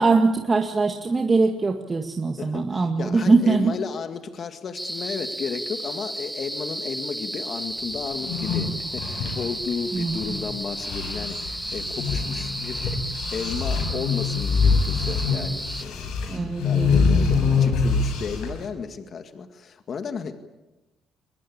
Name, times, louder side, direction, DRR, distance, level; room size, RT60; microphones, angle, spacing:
voice 1, 0.0-3.7 9.9-10.4 16.3-17.3, right 3 dB, 30° right, 3 dB, 1.9 m, -22 dB
voice 2, 2.4-20.4, left 6 dB, 50° left, 7 dB, 2.0 m, -34 dB
sound 1, 4.7-15.8, right 1 dB, 5° right, 1.1 m, -33 dB
sound 2, 8.1-10.5 10.8-18.7, left 5 dB, 85° left, 5.9 m, -25 dB
23.5 x 20.5 x 8.6 m, 1.1 s
cardioid pair, 95°, 0 cm